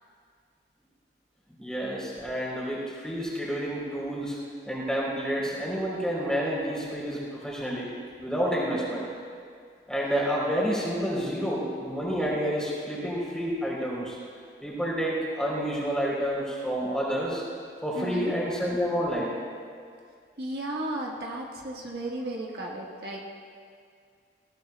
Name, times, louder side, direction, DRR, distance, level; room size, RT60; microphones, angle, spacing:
voice 1, 1.6-4.4 4.6-7.9 8.2-9.1 9.9-14.2 14.6-17.4 17.8-19.4, equal, 5° left, -5 dB, 3.3 m, -29 dB
voice 2, 17.9-18.4 20.4-23.2, right 1 dB, 65° right, -2 dB, 1.4 m, -34 dB
19.5 x 17.5 x 2.2 m, 2.2 s
head